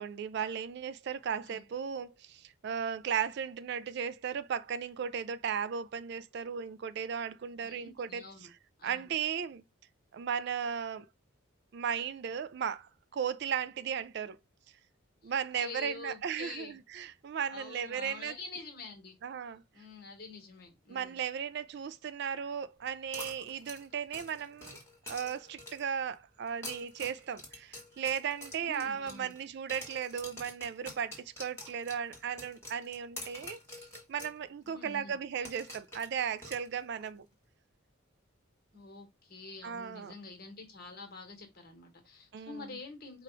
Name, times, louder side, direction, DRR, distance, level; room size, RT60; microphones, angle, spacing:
voice 1, 0.0-8.5 8.8-9.6 10.1-11.1 11.7-14.4 15.2-18.3 19.2-19.6 20.9-24.8 25.1-37.3 39.6-40.1 42.3-42.8, right 7 dB, 50° right, 0.3 m, -36 dB
voice 2, 7.6-8.5 8.8-9.1 15.2-16.8 17.5-19.2 19.7-21.2 28.6-29.3 34.6-35.2 38.7-43.2, left 3 dB, 45° left, 1.4 m, -47 dB
sound 1, 23.1-26.0 26.5-29.4 29.7-34.4 34.7-34.8 35.4-37.1, left 1 dB, 10° left, 1.4 m, -47 dB
4.9 x 2.4 x 4.5 m
head